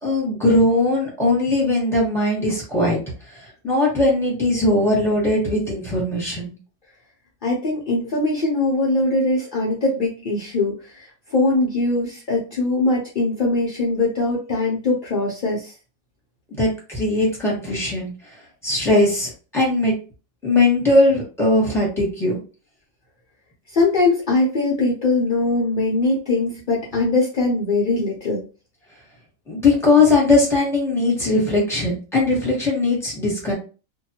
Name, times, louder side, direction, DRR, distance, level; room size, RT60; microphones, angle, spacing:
voice 1, 0.0-3.0 3.3-6.5 16.5-18.1 18.6-19.9 20.4-22.4 29.5-33.5, left 2 dB, ahead, -4 dB, 1.0 m, -19 dB
voice 2, 7.4-15.7 23.7-28.4, left 2 dB, 65° left, -3 dB, 0.5 m, -21 dB
2.6 x 2.2 x 2.8 m, 0.35 s
omnidirectional pair, 1.7 m